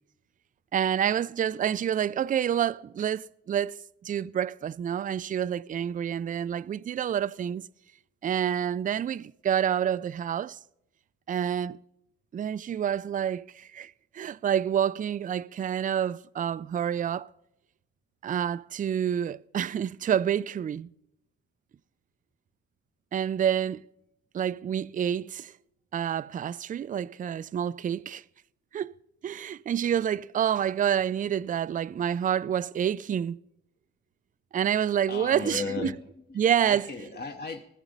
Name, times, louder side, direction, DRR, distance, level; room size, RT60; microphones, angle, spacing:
voice 1, 0.7-7.6 8.2-10.6 11.3-11.8 12.3-17.3 18.2-20.9 23.1-23.9 24.3-25.5 25.9-28.2 28.7-28.9 29.2-33.4 34.5-35.9 36.4-36.8, right 9 dB, 30° right, 0.3 m, -28 dB
voice 2, 35.1-37.6, left 4 dB, 35° left, 1.0 m, -36 dB
19.5 x 7.1 x 5.2 m
cardioid pair, 90°, 30 cm